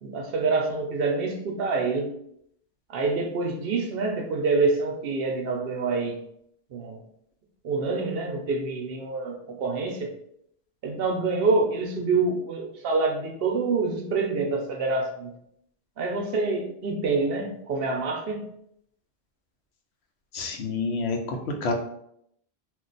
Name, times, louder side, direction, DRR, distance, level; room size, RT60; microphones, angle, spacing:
voice 1, 0.0-2.1 2.9-6.2 6.7-7.0 7.6-10.1 10.8-15.3 16.0-18.4, right 3 dB, 70° right, 2 dB, 0.8 m, -26 dB
voice 2, 20.3-21.7, left 3 dB, 75° left, 3 dB, 0.9 m, -28 dB
2.4 x 2.2 x 3.8 m, 0.73 s
omnidirectional pair, 1.1 m